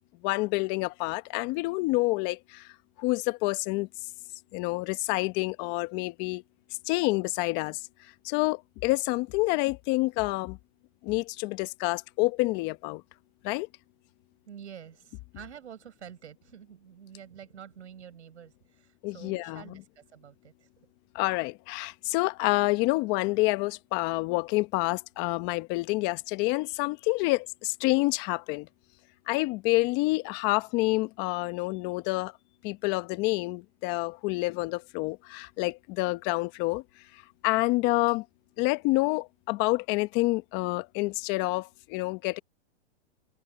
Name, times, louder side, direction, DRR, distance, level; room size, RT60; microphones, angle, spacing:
voice 1, 0.2-2.7 3.0-3.9 4.5-6.4 6.9-7.8 8.2-10.6 11.0-13.0 13.4-13.7 19.0-19.8 21.1-28.7 29.3-32.3 32.6-36.8 37.4-38.2 38.6-42.4, left 22 dB, 30° left, 1.1 m, -28 dB
voice 2, 14.5-20.7, right 8 dB, 90° right, 6.3 m, -48 dB
hypercardioid pair, 150°, 34 cm